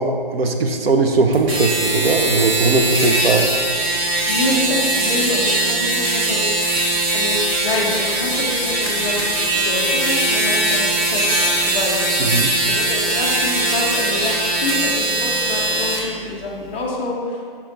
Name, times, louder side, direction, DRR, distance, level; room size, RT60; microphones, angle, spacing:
voice 1, 0.0-3.6 12.2-12.5, right 3 dB, 90° right, 4 dB, 0.7 m, -19 dB
sound 1, 1.3-16.0, right 1 dB, 20° right, 0.8 m, -20 dB
voice 2, 4.3-6.4 7.1-12.0 12.6-17.5, left 2 dB, 10° left, -6 dB, 0.4 m, -26 dB
5.8 x 4.6 x 3.8 m, 2.1 s
hypercardioid pair, 155°, 29 cm